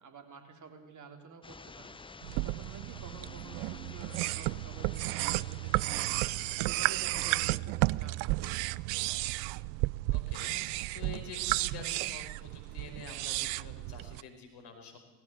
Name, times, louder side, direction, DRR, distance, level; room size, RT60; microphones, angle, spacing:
voice 1, 0.0-1.9 2.4-6.1 6.4-8.8, right 4 dB, 40° right, 5 dB, 3.4 m, -50 dB
sound 1, 1.4-6.6, left 4 dB, 10° left, 0.7 m, -50 dB
sound 2, 2.2-14.2, right 21 dB, 60° right, 0.6 m, -33 dB
voice 2, 10.1-10.7 10.9-15.0, left 5 dB, 55° left, 4 dB, 5.2 m, -47 dB
18.5 x 16.5 x 9.0 m, 1.2 s
hypercardioid pair, 60°, 47 cm